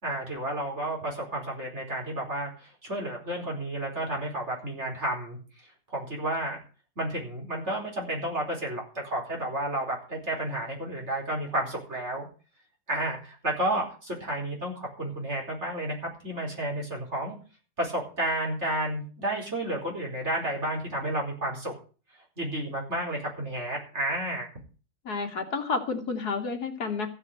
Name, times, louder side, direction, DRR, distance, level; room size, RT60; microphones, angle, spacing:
voice 1, 0.0-5.4 5.9-6.6 7.0-12.3 12.9-17.4 17.8-21.7 22.4-24.5, right 1 dB, 45° right, -1 dB, 4.8 m, -31 dB
voice 2, 25.0-27.1, left 4 dB, 75° left, 4 dB, 2.7 m, -30 dB
15.0 x 5.7 x 8.9 m, 0.38 s
omnidirectional pair, 1.7 m